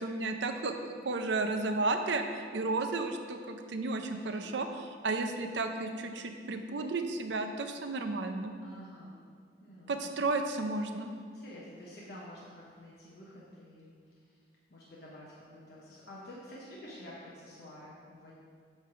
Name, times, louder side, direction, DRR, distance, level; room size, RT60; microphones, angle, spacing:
voice 1, 0.0-4.7 5.0-8.5 9.9-11.1, right 3 dB, 75° right, 6 dB, 0.6 m, -33 dB
voice 2, 4.1-4.5 8.6-9.2 9.6-10.1 11.3-14.4 14.7-18.3, equal, 60° left, -6 dB, 1.1 m, -49 dB
8.9 x 3.3 x 5.9 m, 2.1 s
head